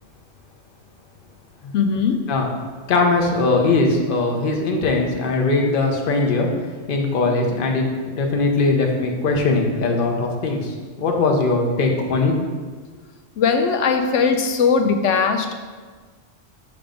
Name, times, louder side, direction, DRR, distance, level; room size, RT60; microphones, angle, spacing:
voice 1, 1.7-2.3 13.4-15.5, left 5 dB, 80° left, 5 dB, 1.0 m, -19 dB
voice 2, 2.9-6.5 6.9-12.3, left 3 dB, 50° left, 2 dB, 0.9 m, -20 dB
5.7 x 3.5 x 5.1 m, 1.5 s
omnidirectional pair, 1.3 m